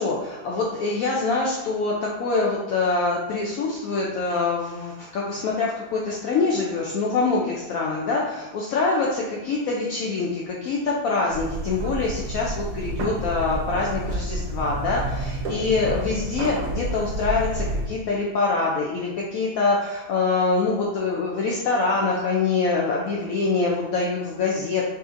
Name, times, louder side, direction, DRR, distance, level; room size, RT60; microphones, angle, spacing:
voice 1, 0.0-1.9 2.2-24.9, left 3 dB, 70° left, -3 dB, 0.9 m, -25 dB
sound 1, 11.3-17.9, right 1 dB, 70° right, 1.0 m, -29 dB
4.8 x 2.6 x 2.5 m, 1.1 s
omnidirectional pair, 1.7 m